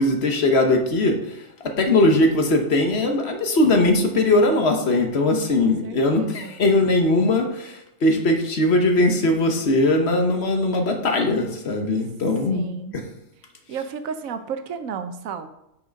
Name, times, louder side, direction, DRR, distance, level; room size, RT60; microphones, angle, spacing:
voice 1, 0.0-12.7 12.9-13.1, left 2 dB, 55° left, 4 dB, 1.2 m, -20 dB
voice 2, 5.6-6.5 12.5-13.0 13.7-15.5, right 6 dB, 80° right, 9 dB, 1.1 m, -33 dB
6.3 x 6.0 x 5.1 m, 0.85 s
omnidirectional pair, 1.4 m